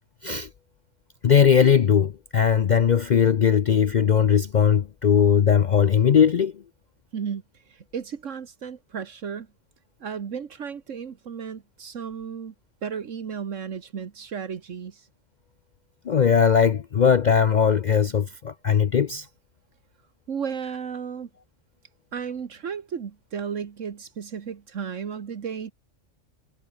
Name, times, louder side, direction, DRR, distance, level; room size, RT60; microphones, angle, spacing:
voice 1, 1.2-6.5 16.1-19.3, left 7 dB, 50° left, 0.6 m, -19 dB
voice 2, 7.1-9.5 10.0-12.5 12.8-15.1 20.3-21.3 22.1-25.7, right 7 dB, 80° right, 1.7 m, -34 dB
omnidirectional pair, 1.3 m